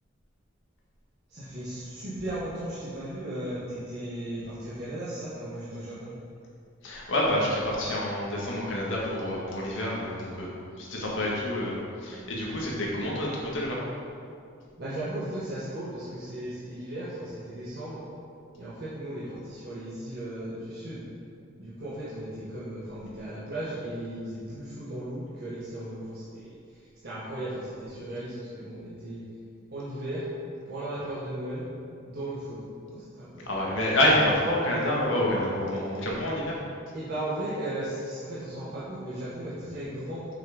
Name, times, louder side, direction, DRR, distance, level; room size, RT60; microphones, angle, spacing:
voice 1, 1.3-6.1 14.8-18.0 18.5-21.0 21.6-29.2 29.7-30.3 30.6-31.7 32.0-33.5 36.9-40.3, right 1 dB, 55° right, -10 dB, 1.6 m, -36 dB
voice 2, 6.8-10.5 10.8-13.8 33.5-36.6, left 1 dB, 70° left, -4 dB, 1.9 m, -27 dB
7.3 x 6.3 x 5.1 m, 2.4 s
head